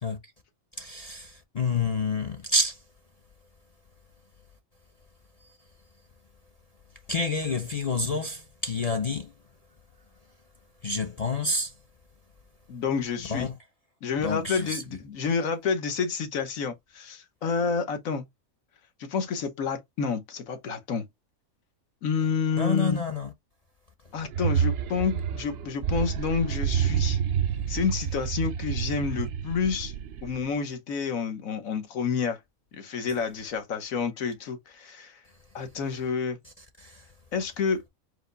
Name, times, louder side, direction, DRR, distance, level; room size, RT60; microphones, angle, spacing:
voice 1, 0.7-2.8 5.4-5.6 7.1-9.3 10.8-11.8 13.3-13.6 14.2-14.8 22.6-23.3 36.4-37.1, left 3 dB, 55° left, 0.4 m, -29 dB
voice 2, 12.7-13.5 14.0-18.2 19.0-21.1 22.0-23.0 24.1-27.2 27.7-29.9 30.2-32.4 32.7-35.2 35.5-36.4 37.3-37.8, left 5 dB, 75° left, 1.4 m, -29 dB
sound 1, 24.2-30.5, right 8 dB, 65° right, 0.6 m, -29 dB
4.9 x 2.1 x 3.8 m
omnidirectional pair, 1.5 m